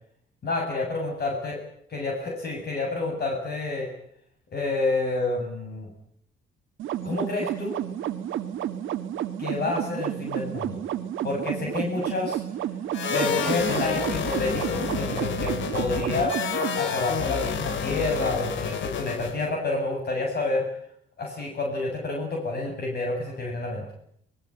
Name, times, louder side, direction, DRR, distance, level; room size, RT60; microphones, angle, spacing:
voice 1, 0.4-1.6 1.9-3.9 4.5-5.9 7.0-7.8 9.4-10.8 11.2-12.4 13.1-16.3 16.8-20.6 21.2-23.8, left 2 dB, 55° left, 0 dB, 7.7 m, -29 dB
sound 1, 6.8-16.8, right 11 dB, 80° right, 1.6 m, -31 dB
sound 2, 12.9-19.5, left 7 dB, 70° left, 2.4 m, -29 dB
24.0 x 21.0 x 9.1 m, 0.70 s
cardioid pair, 90°, 20 cm